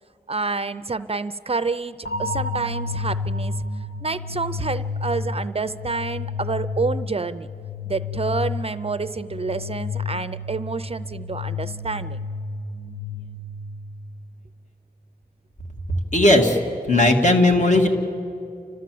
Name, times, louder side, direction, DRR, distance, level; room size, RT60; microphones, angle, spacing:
voice 1, 0.3-3.5 4.0-7.5 7.9-12.2, right 4 dB, 40° right, 13 dB, 0.4 m, -28 dB
sound 1, 2.0-14.0, left 3 dB, 75° left, 1.4 m, -31 dB
voice 2, 15.9-16.6 16.9-17.9, left 1 dB, 50° left, 2 dB, 2.2 m, -17 dB
30.0 x 13.5 x 7.6 m, 2.6 s
wide cardioid pair, 100°, 16 cm